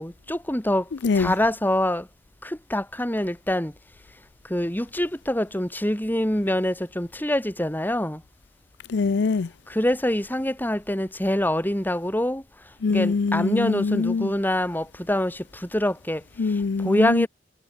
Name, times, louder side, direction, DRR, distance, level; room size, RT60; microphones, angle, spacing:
voice 1, 0.0-0.8 1.2-2.0 2.4-3.7 4.5-8.2 9.7-12.4 12.9-15.4 15.7-16.2 16.8-17.3, left 1 dB, 10° left, 3.5 m, -25 dB
voice 2, 1.0-1.3 8.9-9.5 12.8-14.3 16.4-17.3, left 4 dB, 70° left, 0.5 m, -23 dB
head